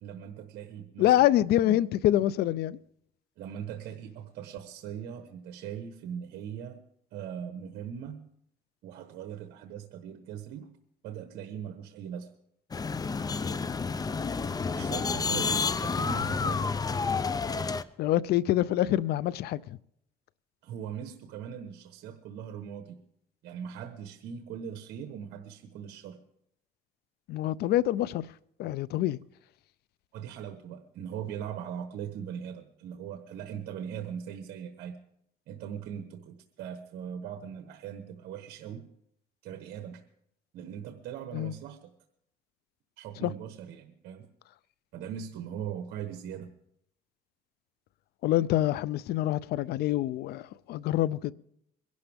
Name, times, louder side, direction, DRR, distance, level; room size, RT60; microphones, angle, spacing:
voice 1, 0.0-1.3 1.6-1.8 3.4-6.8 7.1-8.3 8.8-10.7 11.0-12.3 14.7-16.6 20.6-23.0 23.4-26.2 30.1-35.0 35.5-38.9 39.4-40.0 40.5-41.9 43.0-44.3 44.9-46.5, right 8 dB, 75° right, 1.2 m, -40 dB
voice 2, 1.0-2.8 18.0-19.8 27.3-28.2 28.6-29.2 41.3-41.5 43.2-43.3 48.2-51.3, left 13 dB, 70° left, 0.5 m, -26 dB
sound 1, 12.7-17.8, left 5 dB, 20° left, 0.6 m, -30 dB
22.5 x 11.5 x 3.5 m
cardioid pair, 110°, 17 cm